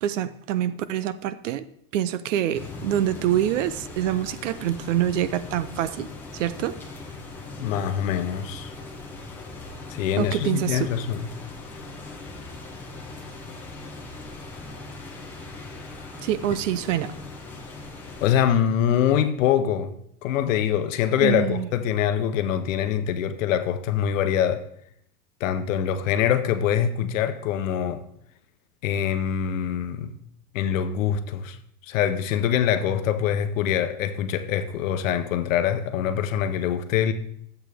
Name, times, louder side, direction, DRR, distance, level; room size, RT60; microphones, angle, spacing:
voice 1, 0.0-1.6 1.9-6.1 6.3-6.8 10.2-10.9 16.2-17.1 21.2-21.7, right 11 dB, 55° right, 0.5 m, -26 dB
sound 1, 2.5-18.3, left 2 dB, 5° left, 0.5 m, -40 dB
voice 2, 7.6-8.7 9.9-11.3 18.2-19.9 20.2-24.6 25.4-28.0 28.8-30.1 30.5-31.6 31.8-37.1, left 9 dB, 55° left, 0.9 m, -24 dB
12.0 x 8.1 x 3.5 m
supercardioid pair, 155°, 47 cm